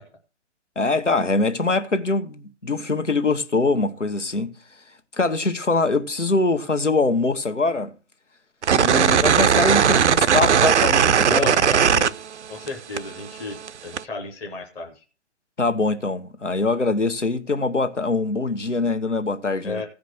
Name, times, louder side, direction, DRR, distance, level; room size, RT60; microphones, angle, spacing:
voice 1, 0.7-4.5 5.1-7.9 8.7-11.6 15.6-19.8, left 3 dB, 90° left, 1.3 m, -23 dB
sound 1, 8.6-12.7 13.0-14.0, right 8 dB, 70° right, 0.5 m, -18 dB
voice 2, 11.2-12.2 12.5-15.0 19.6-19.8, left 3 dB, 5° left, 0.5 m, -34 dB
15.5 x 5.2 x 6.2 m
figure-of-eight pair, 135°, 35 cm